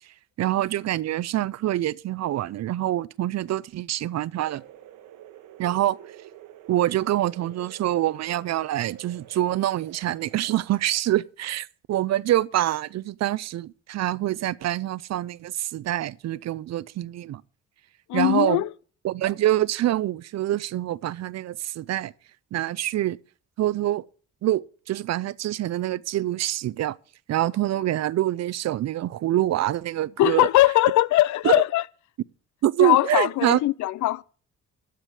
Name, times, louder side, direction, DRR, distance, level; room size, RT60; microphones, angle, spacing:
voice 1, 0.4-4.6 5.6-6.0 6.7-17.4 18.1-18.6 19.0-22.1 22.5-23.2 23.6-24.0 24.4-27.0 27.3-30.5 31.4-31.6 32.6-33.6, right 13 dB, 60° right, 0.6 m, -25 dB
sound 1, 4.4-11.0, right 12 dB, 85° right, 1.4 m, -48 dB
voice 2, 18.1-18.7 30.2-31.8 32.8-34.2, left 16 dB, 75° left, 0.5 m, -20 dB
12.5 x 5.1 x 7.8 m
cardioid pair, 90°, 30 cm